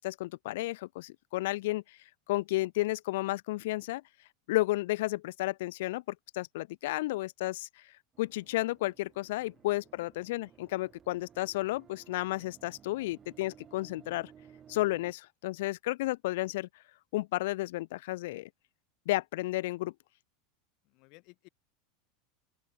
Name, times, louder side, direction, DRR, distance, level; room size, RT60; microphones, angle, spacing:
voice 1, 0.0-1.8 2.3-4.0 4.5-6.0 6.3-7.7 8.2-14.3 14.7-16.7 17.1-18.5 19.1-19.9, left 18 dB, 75° left, 0.4 m, -32 dB
sound 1, 8.1-15.1, right 8 dB, 30° right, 5.2 m, -58 dB
voice 2, 20.8-21.5, left 29 dB, 60° left, 4.3 m, -58 dB
open air
supercardioid pair, 110°, 0 cm